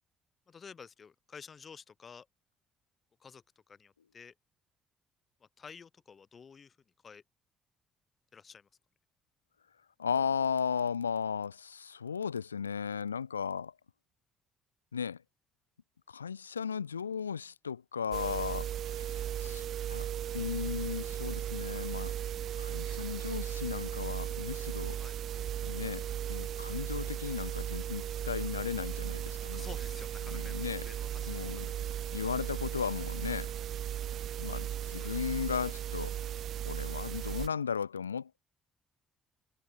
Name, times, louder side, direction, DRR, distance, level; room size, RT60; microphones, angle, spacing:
voice 1, 0.5-2.3 3.2-4.3 5.4-6.8 7.0-7.2 8.3-8.7 25.0-25.2 29.4-31.8 35.0-35.1, left 6 dB, 40° left, 4.0 m, -51 dB
voice 2, 10.0-13.7 14.9-15.2 16.1-20.1 20.3-22.1 22.6-25.0 25.6-29.7 30.3-30.9 31.3-31.7 32.1-33.5 34.4-36.1 36.7-38.4, left 6 dB, 80° left, 0.6 m, -36 dB
sound 1, 18.1-37.5, right 10 dB, 50° right, 0.5 m, -36 dB
figure-of-eight pair, 45°, 0 cm